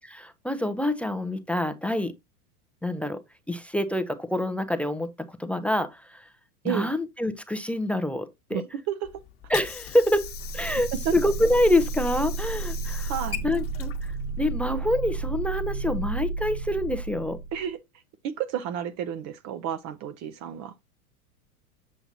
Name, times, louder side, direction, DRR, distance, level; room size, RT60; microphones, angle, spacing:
voice 1, 0.1-2.1 2.8-3.2 3.5-6.3 6.6-8.6 9.5-13.1 13.4-13.9 14.4-17.4, left 1 dB, 5° left, 0.4 m, -26 dB
voice 2, 8.5-9.1 13.1-13.4 17.5-17.8 18.4-20.7, right 9 dB, 40° right, 0.7 m, -31 dB
Water / Sink (filling or washing), 9.0-15.0, left 10 dB, 30° left, 1.2 m, -40 dB
sound 1, 10.1-17.7, right 4 dB, 80° right, 2.8 m, -32 dB
7.4 x 6.8 x 2.7 m
hypercardioid pair, 105°, 44 cm